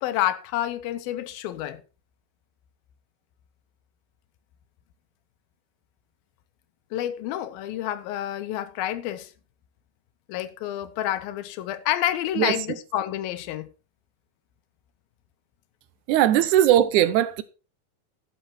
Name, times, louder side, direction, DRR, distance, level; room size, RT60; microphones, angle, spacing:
voice 1, 0.0-1.8 6.9-9.3 10.3-13.7, left 12 dB, 85° left, 2.7 m, -29 dB
voice 2, 16.1-17.4, right 12 dB, 75° right, 1.9 m, -19 dB
12.5 x 9.2 x 4.4 m
omnidirectional pair, 4.1 m